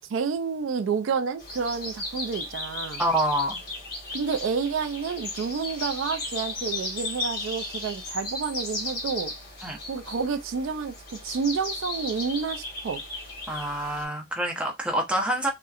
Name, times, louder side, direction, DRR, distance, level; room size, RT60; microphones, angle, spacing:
voice 1, 0.1-3.0 4.1-9.3 9.9-13.0, right 5 dB, 70° right, 0.4 m, -29 dB
sound 1, 1.4-14.0, left 2 dB, 50° left, 1.2 m, -35 dB
voice 2, 3.0-3.6 9.6-9.8 13.5-15.5, right 1 dB, 5° right, 0.7 m, -26 dB
2.8 x 2.1 x 2.3 m
head